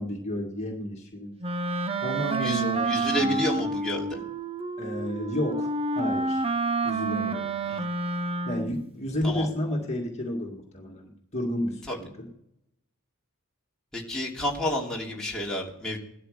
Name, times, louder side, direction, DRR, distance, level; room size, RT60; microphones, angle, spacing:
voice 1, 0.0-1.3 2.0-3.4 4.8-6.4 6.8-7.5 8.5-12.3, left 1 dB, 30° left, -1 dB, 2.1 m, -31 dB
Wind instrument woodwind instrument, 1.4-8.8, right 3 dB, 25° right, 0.8 m, -29 dB
voice 2, 2.3-4.2 7.6-7.8 9.2-9.5 11.9-12.0 13.9-16.0, left 1 dB, 5° left, -4 dB, 2.9 m, -30 dB
17.0 x 12.5 x 5.1 m, 0.78 s
head